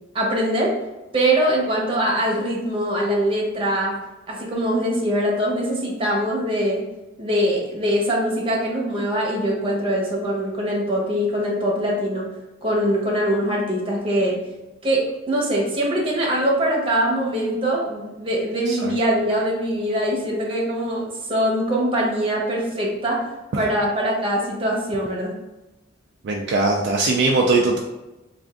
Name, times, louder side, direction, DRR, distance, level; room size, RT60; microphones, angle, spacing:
voice 1, 0.1-0.7 1.1-3.9 4.3-6.8 7.2-12.2 12.6-14.4 14.8-23.2 23.5-25.3, right 1 dB, 25° right, -3 dB, 0.9 m, -22 dB
voice 2, 26.2-27.8, right 3 dB, 55° right, -1 dB, 0.4 m, -20 dB
3.4 x 2.4 x 3.7 m, 1.0 s
head